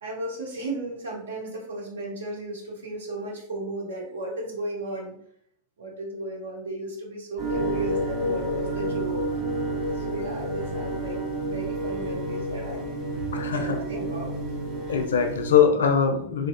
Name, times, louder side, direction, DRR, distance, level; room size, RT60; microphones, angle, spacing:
voice 1, 0.0-5.2 5.8-9.3 9.9-12.8 13.5-14.4, right 1 dB, 65° right, -1 dB, 0.7 m, -35 dB
sound 1, 7.4-15.7, right 2 dB, 10° right, 1.2 m, -31 dB
Bowed string instrument, 7.6-15.1, equal, 30° right, 0.6 m, -37 dB
voice 2, 13.3-13.9 14.9-16.5, left 7 dB, 65° left, 4 dB, 0.4 m, -22 dB
2.7 x 2.2 x 2.2 m, 0.67 s
figure-of-eight pair, 90°, 0 cm